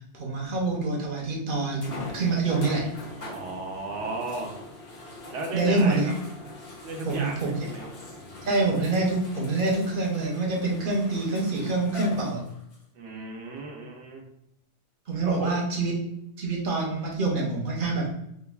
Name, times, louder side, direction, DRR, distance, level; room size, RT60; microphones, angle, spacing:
voice 1, 0.1-2.9 5.5-6.1 7.0-7.6 8.4-12.4 15.1-15.9 16.4-18.1, right 3 dB, 55° right, -1 dB, 0.8 m, -26 dB
sound 1, 0.7-0.8 1.8-12.8 13.6-13.7 17.1-17.2, left 2 dB, 60° left, 1.2 m, -42 dB
voice 2, 3.2-4.5 5.3-6.1 6.8-7.9 12.9-14.3 15.2-15.5, right 2 dB, 80° right, 1 dB, 1.0 m, -35 dB
4.5 x 2.2 x 2.3 m, 0.79 s
omnidirectional pair, 1.2 m